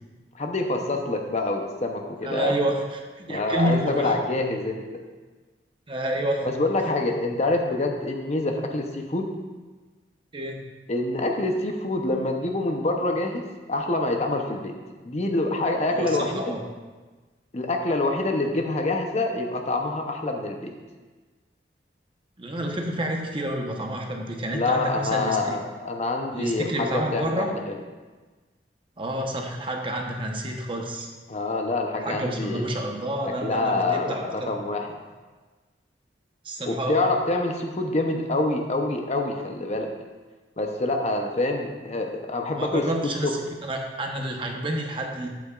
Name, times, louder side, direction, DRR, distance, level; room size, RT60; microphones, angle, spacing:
voice 1, 0.3-2.5 3.3-4.8 6.4-9.3 10.9-14.7 15.1-16.5 17.5-20.7 24.5-27.8 31.3-32.7 33.2-34.9 36.7-39.9 40.6-43.4, left 2 dB, 40° left, 3 dB, 0.7 m, -26 dB
voice 2, 2.2-4.1 5.9-6.5 10.3-10.6 15.9-16.6 22.4-25.6 26.3-27.5 29.0-31.1 32.0-34.5 36.4-37.0 42.6-45.3, right 1 dB, 30° right, 1 dB, 0.9 m, -29 dB
12.0 x 8.3 x 2.4 m, 1.3 s
head